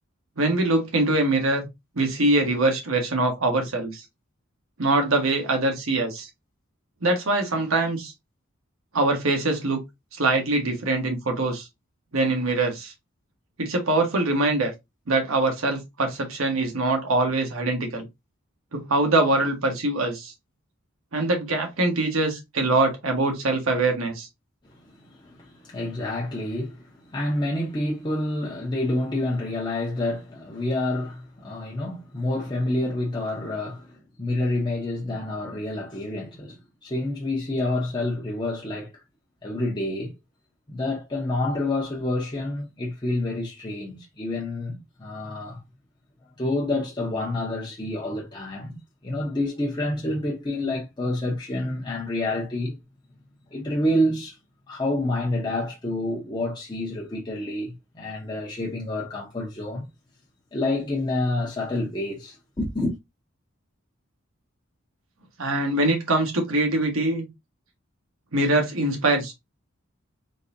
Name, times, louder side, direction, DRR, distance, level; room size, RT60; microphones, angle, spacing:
voice 1, 0.4-1.6 2.0-4.0 4.8-6.3 7.0-8.1 8.9-9.8 10.2-11.7 12.1-12.9 13.6-14.7 15.1-18.0 18.7-20.3 21.1-24.3 65.4-67.3 68.3-69.3, right 2 dB, 85° right, 1.2 m, -23 dB
voice 2, 24.6-38.9 39.4-40.1 40.7-45.6 46.4-52.8 53.5-54.3 54.7-59.9 60.5-63.0, left 1 dB, 20° left, 0.7 m, -28 dB
3.9 x 2.7 x 2.5 m
head